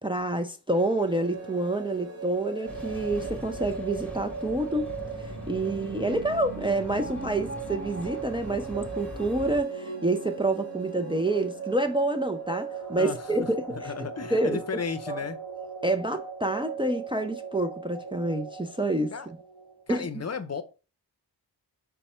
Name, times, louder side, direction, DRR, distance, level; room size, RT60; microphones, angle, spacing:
voice 1, 0.0-4.9 5.2-13.9 14.3-14.6 15.1-15.2 15.8-19.1 19.9-20.1, right 2 dB, 15° right, 0.5 m, -28 dB
sound 1, 0.7-19.8, right 5 dB, 35° right, 1.5 m, -38 dB
sound 2, 2.7-9.6, left 1 dB, 5° left, 1.4 m, -42 dB
voice 2, 13.7-15.4 19.1-19.3 19.9-20.6, left 5 dB, 40° left, 0.7 m, -33 dB
5.3 x 2.2 x 4.3 m
cardioid pair, 45°, 41 cm